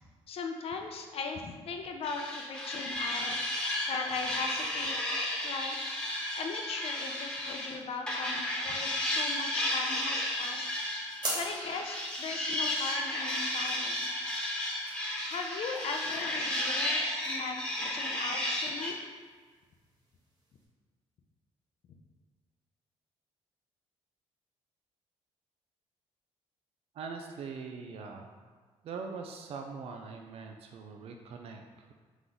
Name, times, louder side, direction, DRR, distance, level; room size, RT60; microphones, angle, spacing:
voice 1, 0.3-3.4 3.9-5.0 5.4-5.8 6.4-10.7 11.3-14.1 15.2-19.0, left 4 dB, 55° left, 4 dB, 0.5 m, -38 dB
sound 1, 2.0-7.7 8.1-18.9, left 1 dB, 10° left, 1.1 m, -33 dB
sound 2, 10.4-20.6, right 2 dB, 40° right, 1.4 m, -46 dB
voice 2, 26.9-28.3 28.8-31.9, right 5 dB, 55° right, 3 dB, 0.4 m, -42 dB
3.7 x 3.0 x 3.9 m, 1.5 s
cardioid pair, 90°, 12 cm